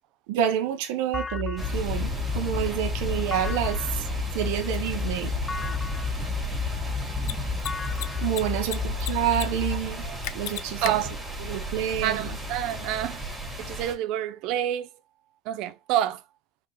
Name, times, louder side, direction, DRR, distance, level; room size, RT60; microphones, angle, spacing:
voice 1, 0.3-4.1 4.3-5.3 8.2-10.0 10.3-10.9 11.4-12.4, right 10 dB, 80° right, 0.9 m, -28 dB
sound 1, 1.1-9.8, left 6 dB, 15° left, 0.3 m, -32 dB
sound 2, 1.6-13.9, equal, 5° right, 2.0 m, -34 dB
Mechanisms, 4.7-4.8 7.1-7.3 7.6-7.7 7.9-8.7 9.0-9.4 9.7-9.8 10.2-10.9, left 14 dB, 70° left, 0.5 m, -33 dB
voice 2, 10.8-11.2 12.0-13.2 13.7-14.9 15.5-16.2, right 11 dB, 60° right, 0.6 m, -28 dB
4.5 x 3.7 x 3.1 m
cardioid pair, 150°, 0 cm